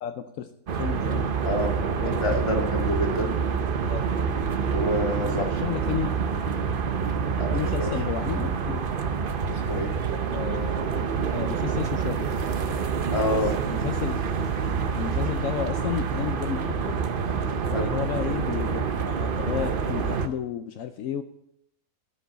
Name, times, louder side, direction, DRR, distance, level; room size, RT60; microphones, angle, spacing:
voice 1, 0.0-1.3 2.0-2.2 3.9-4.0 5.2-6.1 7.5-8.8 10.3-10.9 11.3-12.3 13.3-14.2 14.9-17.0 17.7-21.2, left 10 dB, 70° left, 7 dB, 1.0 m, -32 dB
sound 1, 0.7-20.3, right 6 dB, 50° right, 0.8 m, -27 dB
voice 2, 1.4-1.8 2.1-3.4 4.7-5.5 7.4-7.9 9.5-9.9 13.1-13.5 17.7-17.9, left 1 dB, 20° left, 0 dB, 2.1 m, -27 dB
14.5 x 5.1 x 6.6 m, 0.75 s
omnidirectional pair, 1.5 m